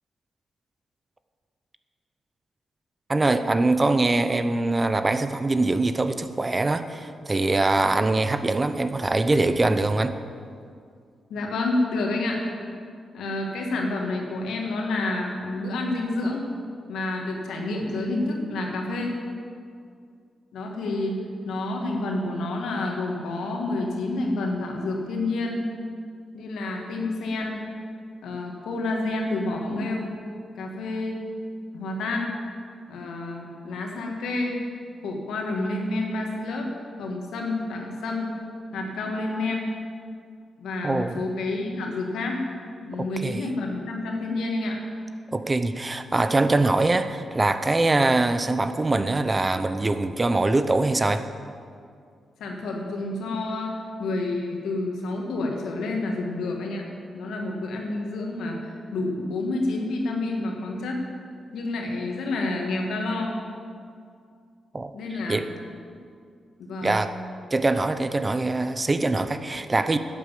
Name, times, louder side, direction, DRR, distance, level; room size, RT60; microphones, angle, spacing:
voice 1, 3.1-10.1 40.8-41.2 43.0-43.4 45.3-51.2 64.7-64.9 65.3-65.5 66.8-67.1 67.5-70.0, right 2 dB, 25° right, 11 dB, 0.7 m, -23 dB
voice 2, 11.3-12.5 13.1-16.5 16.9-19.2 20.5-21.2 21.4-25.6 26.3-27.5 28.2-30.1 30.6-31.2 31.7-32.4 32.9-34.6 35.0-36.7 37.0-38.3 38.7-39.7 40.6-42.4 42.8-44.8 52.4-56.9 57.1-61.0 61.5-63.4 64.9-65.4 66.7-67.0, left 2 dB, 90° left, 1 dB, 2.1 m, -29 dB
12.0 x 8.4 x 7.6 m, 2.3 s
cardioid pair, 75°, 0 cm